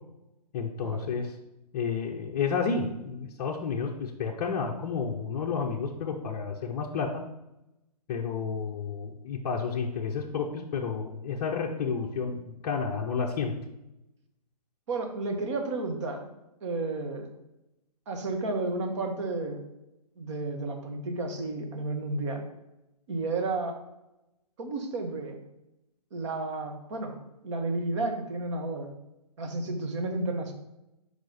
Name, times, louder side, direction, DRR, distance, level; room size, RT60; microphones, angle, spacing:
voice 1, 0.5-1.4 1.7-7.2 8.1-13.5, left 5 dB, 30° left, -1 dB, 0.6 m, -31 dB
voice 2, 14.9-16.3 16.6-17.3 18.1-19.6 20.2-22.4 23.1-23.8 24.6-25.4 26.1-27.2 27.4-28.9 29.4-30.5, right 2 dB, 45° right, 4 dB, 1.2 m, -32 dB
6.3 x 4.9 x 4.1 m, 0.93 s
figure-of-eight pair, 135°, 21 cm